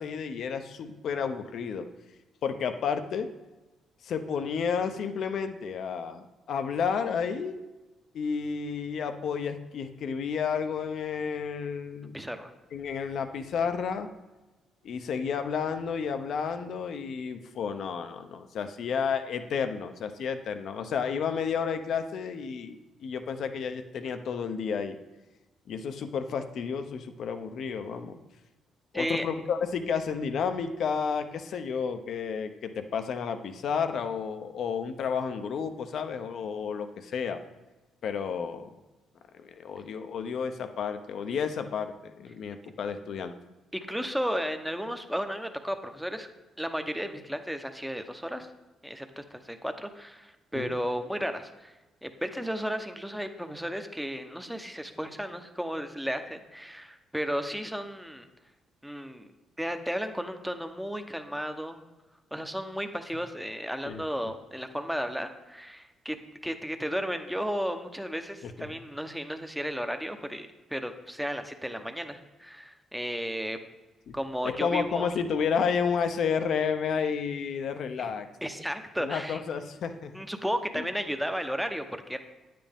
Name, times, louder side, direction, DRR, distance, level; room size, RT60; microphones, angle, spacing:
voice 1, 0.0-1.9 2.4-3.3 4.0-7.6 8.1-12.2 12.7-14.1 14.8-25.0 25.7-28.2 28.9-37.4 38.0-38.7 39.4-43.3 50.5-50.7 63.8-64.0 68.4-68.5 74.1-74.2 74.4-78.3 79.0-80.1 80.7-80.9, left 6 dB, 65° left, 9 dB, 0.7 m, -31 dB
voice 2, 12.1-12.5 28.9-29.2 43.7-46.3 46.6-48.5 48.8-51.7 52.0-58.3 58.8-59.3 59.6-61.8 62.3-66.2 66.4-73.6 74.1-75.1 78.0-78.1 78.4-79.4 80.1-82.2, equal, ahead, 7 dB, 0.8 m, -34 dB
9.4 x 7.6 x 3.6 m, 1.1 s
cardioid pair, 80°, 0 cm